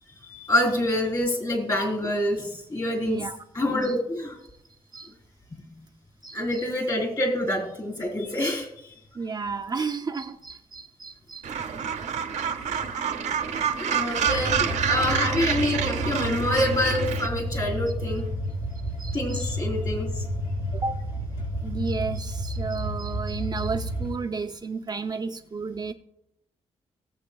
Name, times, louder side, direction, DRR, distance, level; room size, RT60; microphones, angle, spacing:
voice 1, 0.3-3.2 3.5-4.4 6.3-8.9 13.8-18.3 19.1-20.2, left 1 dB, 35° left, 3.8 m, -26 dB
voice 2, 3.1-3.4 3.8-4.0 4.9-5.1 6.2-6.6 9.1-11.5 19.0-19.5 20.7-21.0 21.6-25.9, right 4 dB, 35° right, 0.5 m, -32 dB
Gull seagull, 11.4-17.3, right 7 dB, 80° right, 0.8 m, -28 dB
sound 1, 14.1-24.1, equal, 85° left, 4.2 m, -31 dB
19.0 x 7.7 x 2.3 m
cardioid pair, 85°, 12 cm